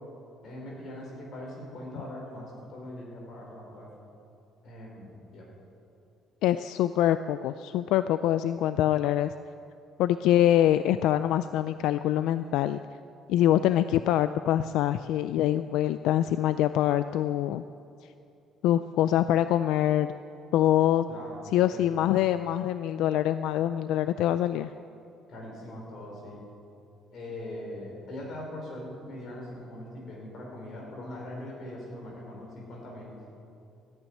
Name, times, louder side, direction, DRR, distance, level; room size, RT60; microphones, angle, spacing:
voice 1, 0.4-3.9 4.6-5.4 21.1-21.9 25.3-26.4 27.1-33.1, left 1 dB, 40° left, -2 dB, 4.6 m, -41 dB
voice 2, 6.4-9.3 10.0-12.8 13.3-17.6 18.6-20.1 20.5-21.0 21.5-24.7, left 12 dB, 75° left, 12 dB, 0.3 m, -24 dB
14.0 x 8.9 x 9.7 m, 2.6 s
cardioid pair, 180°, 0 cm